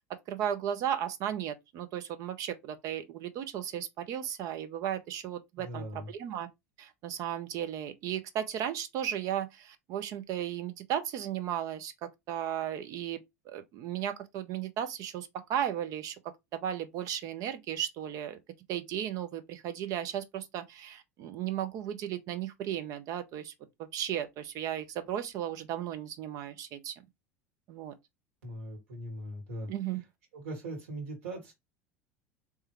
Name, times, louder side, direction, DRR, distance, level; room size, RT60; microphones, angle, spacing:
voice 1, 0.3-6.5 6.8-13.2 13.4-16.2 16.5-18.4 18.7-23.5 23.8-27.0 27.7-27.9 29.7-30.0, right 10 dB, 45° right, 0.7 m, -35 dB
voice 2, 5.6-6.1 28.4-29.7 30.3-31.5, right 1 dB, 65° right, 2.3 m, -40 dB
3.3 x 3.3 x 3.3 m
figure-of-eight pair, 70°, 8 cm